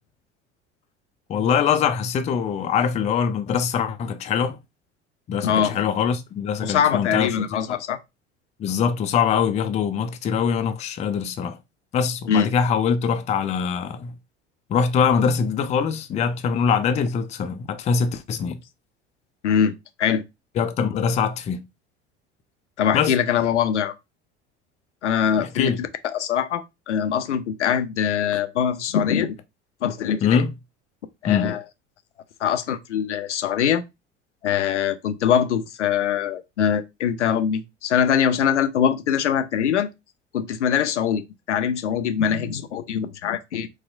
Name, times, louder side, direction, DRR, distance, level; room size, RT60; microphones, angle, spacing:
voice 1, 1.3-4.6 5.3-7.8 8.6-11.6 11.9-14.2 14.7-18.6 20.6-21.6 22.9-23.1 25.4-25.8 30.2-30.5 31.3-31.5, left 7 dB, 20° left, 0.4 m, -23 dB
voice 2, 5.4-5.8 6.6-8.0 12.3-12.5 19.4-20.2 22.8-23.9 25.0-29.4 29.8-30.4 31.2-31.6 32.4-33.8 34.4-39.9 40.3-41.2 41.5-43.7, left 8 dB, 80° left, 0.5 m, -23 dB
4.0 x 2.1 x 2.5 m
figure-of-eight pair, 65°, 35 cm